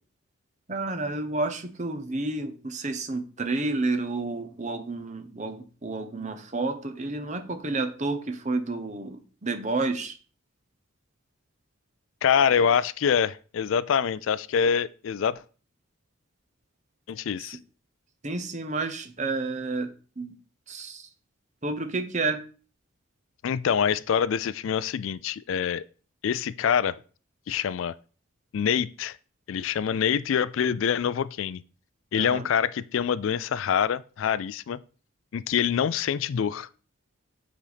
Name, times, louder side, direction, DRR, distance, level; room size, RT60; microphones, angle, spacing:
voice 1, 0.7-10.1 18.2-20.3 20.7-21.1 21.6-22.4 32.1-32.5, right 3 dB, 35° right, 0.9 m, -30 dB
voice 2, 12.2-15.4 17.1-17.6 23.4-25.8 26.2-27.0 27.5-27.9 28.5-29.2 29.5-31.6 32.1-34.8 35.3-36.7, left 7 dB, 70° left, 0.3 m, -25 dB
8.2 x 4.1 x 5.0 m
head